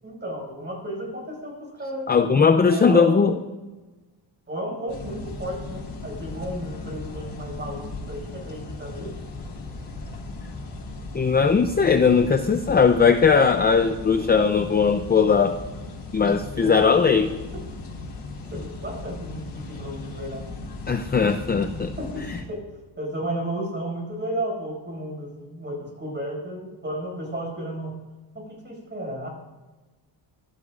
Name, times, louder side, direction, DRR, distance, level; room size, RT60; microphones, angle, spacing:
voice 1, 0.0-2.1 2.6-3.1 4.5-9.2 16.6-17.3 18.5-20.5 21.7-22.6 23.0-28.1 28.3-29.3, right 1 dB, 20° right, -1 dB, 5.8 m, -33 dB
voice 2, 2.1-3.3 11.1-15.6 16.1-17.3 20.9-21.9 22.3-22.4, left 5 dB, 20° left, 8 dB, 0.4 m, -19 dB
sound 1, 4.9-22.4, left 3 dB, 45° left, 4.2 m, -37 dB
24.5 x 16.5 x 2.5 m, 1.2 s
cardioid pair, 145°, 50 cm